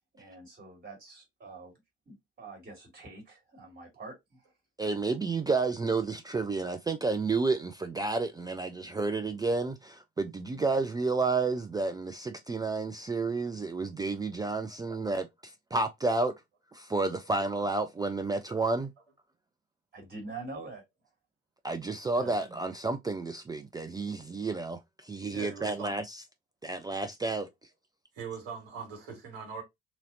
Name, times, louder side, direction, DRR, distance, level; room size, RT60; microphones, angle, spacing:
voice 1, 0.1-1.7 2.1-4.5 19.9-20.8, right 3 dB, 30° right, 2.2 m, -45 dB
voice 2, 4.8-16.3 16.7-18.9 21.6-26.2 26.6-27.5, right 3 dB, 15° right, 0.4 m, -31 dB
voice 3, 25.3-26.0 28.1-29.6, right 5 dB, 70° right, 1.9 m, -41 dB
3.0 x 2.7 x 3.8 m
figure-of-eight pair, 55°, 31 cm